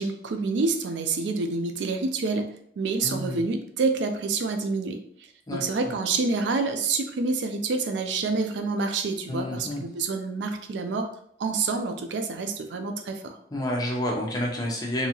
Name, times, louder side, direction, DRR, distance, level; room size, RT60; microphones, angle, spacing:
voice 1, 0.0-5.0 5.5-11.1 11.4-13.4, right 4 dB, 85° right, 7 dB, 0.4 m, -27 dB
voice 2, 3.0-3.4 5.5-5.9 9.3-9.8 13.5-15.1, left 1 dB, 20° left, -1 dB, 0.5 m, -29 dB
2.7 x 2.3 x 2.9 m, 0.67 s
head